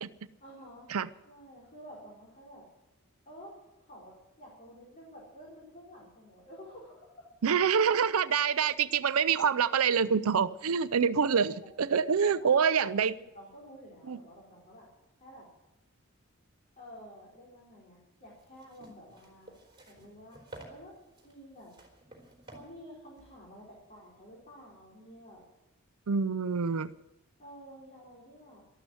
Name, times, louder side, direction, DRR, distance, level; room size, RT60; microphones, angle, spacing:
voice 1, 0.4-0.9 1.2-2.6 3.2-3.5 3.8-7.2 12.1-14.9 15.2-15.5 16.8-19.6 19.9-20.4 20.7-20.9 21.2-21.7 22.5-25.4 27.4-28.6, equal, 35° left, -5 dB, 4.4 m, -51 dB
voice 2, 7.4-13.1 14.1-14.2 26.1-26.9, right 6 dB, 80° right, 14 dB, 0.5 m, -26 dB
sound 1, 18.2-24.2, right 2 dB, 25° right, 3.8 m, -53 dB
13.0 x 12.5 x 7.7 m, 0.99 s
head